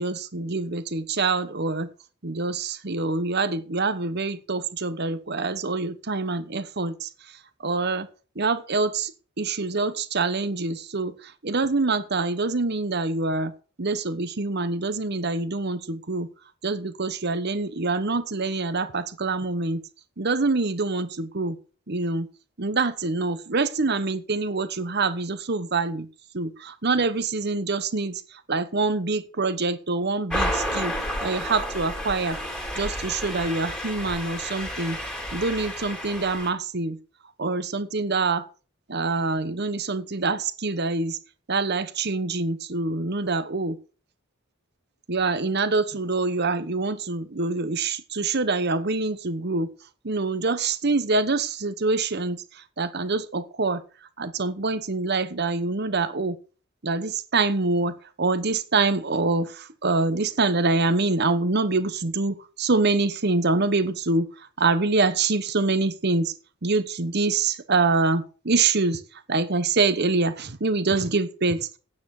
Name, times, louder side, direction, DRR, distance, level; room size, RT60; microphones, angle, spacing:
voice 1, 0.0-1.9 2.2-7.1 7.6-8.1 8.4-9.1 9.4-11.1 11.4-13.5 13.8-16.3 16.6-19.8 20.2-21.6 21.9-22.3 22.6-26.1 26.3-28.2 28.5-30.9 31.2-32.4 32.8-35.0 35.3-37.0 37.4-38.4 38.9-41.2 41.5-43.8 45.1-49.7 50.0-52.4 52.8-53.8 54.2-56.4 56.8-64.3 64.6-66.3 66.6-69.0 69.3-71.8, right 3 dB, 50° right, 13 dB, 1.1 m, -25 dB
sound 1, 30.3-36.5, equal, 5° left, 2.9 m, -31 dB
9.8 x 9.1 x 6.5 m, 0.38 s
head